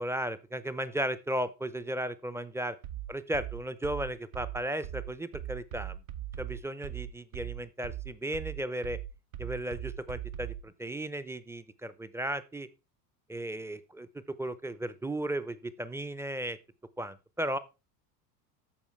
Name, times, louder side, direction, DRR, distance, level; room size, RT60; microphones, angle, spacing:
voice 1, 0.0-2.8 3.1-6.0 6.4-9.0 9.4-12.7 13.3-16.6 17.0-17.6, right 1 dB, 5° right, 15 dB, 0.5 m, -35 dB
sound 1, 2.8-10.7, right 12 dB, 60° right, 1.0 m, -40 dB
14.0 x 4.9 x 3.2 m, 0.28 s
hypercardioid pair, 75°, 48 cm